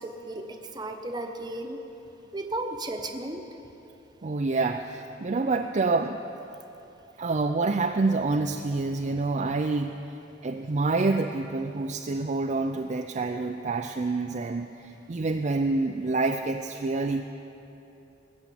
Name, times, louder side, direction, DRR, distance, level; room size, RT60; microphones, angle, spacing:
voice 1, 0.0-1.8 2.3-3.4, right 2 dB, 20° right, 5 dB, 1.0 m, -34 dB
voice 2, 4.2-6.2 7.2-10.0 10.4-17.3, right 3 dB, 40° right, 4 dB, 0.5 m, -27 dB
20.0 x 7.4 x 8.4 m, 2.9 s
head